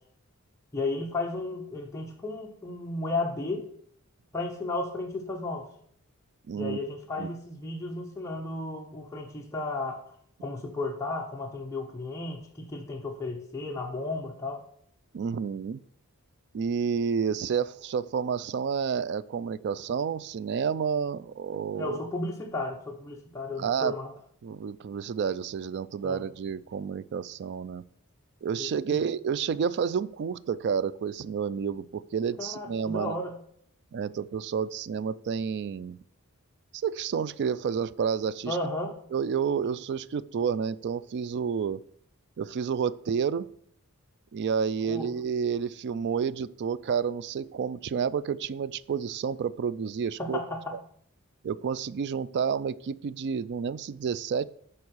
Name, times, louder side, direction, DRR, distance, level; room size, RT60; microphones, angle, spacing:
voice 1, 0.7-3.7 4.3-5.7 6.6-10.0 10.4-14.6 21.7-24.1 26.0-26.2 28.6-29.0 32.4-33.3 38.5-38.9 44.9-45.1 50.2-50.8, left 2 dB, 15° left, 0 dB, 0.7 m, -34 dB
voice 2, 6.5-6.8 7.2-7.3 15.1-15.8 16.5-22.0 23.6-24.0 24.4-27.8 28.4-33.2 33.9-36.0 36.8-38.6 39.1-41.8 42.4-43.5 44.3-50.4 51.4-54.5, right 6 dB, 50° right, 18 dB, 0.3 m, -30 dB
7.1 x 4.8 x 6.3 m, 0.66 s
head